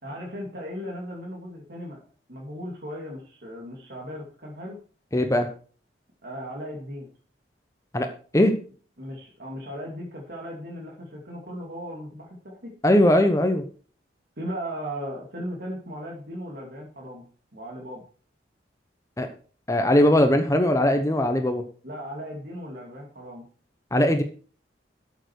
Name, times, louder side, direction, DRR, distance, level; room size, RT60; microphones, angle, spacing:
voice 1, 0.0-2.0 2.3-4.8 6.2-7.1 9.0-12.7 14.4-17.2 17.5-18.0 21.8-23.4, equal, 60° right, -1 dB, 2.6 m, -37 dB
voice 2, 5.1-5.5 7.9-8.1 8.3-8.5 12.8-13.6 19.2-19.3 19.7-21.6 23.9-24.2, left 1 dB, 15° left, 6 dB, 0.9 m, -20 dB
12.5 x 7.0 x 4.6 m, 0.40 s
head